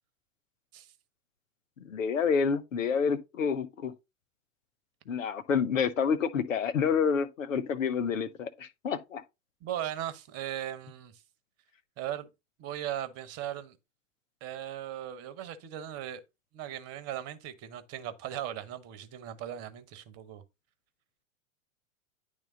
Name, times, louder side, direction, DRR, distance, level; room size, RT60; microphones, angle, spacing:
voice 1, 1.8-3.9 5.1-9.2, left 6 dB, 75° left, 1.0 m, -28 dB
voice 2, 9.6-11.2 12.0-12.3 12.6-13.8 14.4-16.2 16.5-20.4, right 11 dB, 40° right, 1.2 m, -38 dB
10.5 x 3.5 x 3.9 m
figure-of-eight pair, 95°, 40 cm